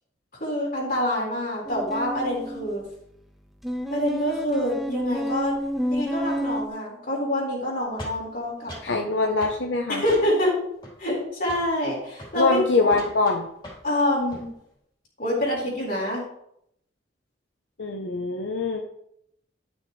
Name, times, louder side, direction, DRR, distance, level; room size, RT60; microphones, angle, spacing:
voice 1, 0.4-2.8 3.9-5.5 5.9-9.0 9.9-10.6 11.0-13.0 13.8-14.5 15.2-16.3, left 1 dB, 50° left, -4 dB, 4.1 m, -26 dB
sound 1, 1.6-2.7 3.6-6.7, equal, ahead, 0.7 m, -29 dB
sound 2, 8.0-9.0 9.4-9.6 10.1-10.5 10.8-11.2 11.5-11.7 12.1-12.4 12.8-13.9 14.2-14.5, equal, 25° left, 3.5 m, -41 dB
voice 2, 8.8-10.0 12.4-13.5 17.8-18.8, left 3 dB, 85° left, 2 dB, 0.9 m, -23 dB
12.5 x 6.5 x 3.3 m, 0.75 s
head